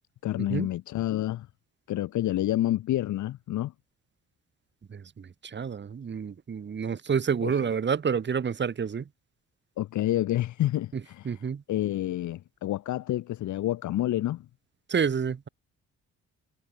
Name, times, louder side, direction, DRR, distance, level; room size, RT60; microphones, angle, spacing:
voice 1, 0.2-1.5 1.9-3.7 7.4-7.7 9.8-14.5, left 14 dB, 75° left, 1.2 m, -29 dB
voice 2, 4.9-9.0 11.3-11.6 14.9-15.5, right 6 dB, 35° right, 1.8 m, -29 dB
cardioid pair, 90°, 30 cm